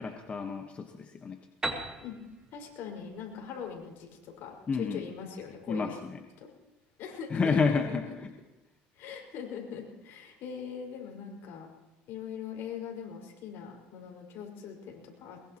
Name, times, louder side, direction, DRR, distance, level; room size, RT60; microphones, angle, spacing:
voice 1, 0.0-1.8 4.7-5.1 5.7-6.2 7.3-8.3, left 4 dB, 30° left, 4 dB, 1.2 m, -30 dB
Piano, 1.6-5.3, right 2 dB, 15° right, 2.6 m, -40 dB
voice 2, 2.5-6.0 6.4-6.5 7.0-7.8 8.9-11.7 12.1-15.6, left 7 dB, 65° left, 1 dB, 5.3 m, -41 dB
22.0 x 22.0 x 3.0 m, 1.1 s
supercardioid pair, 100°, 4 cm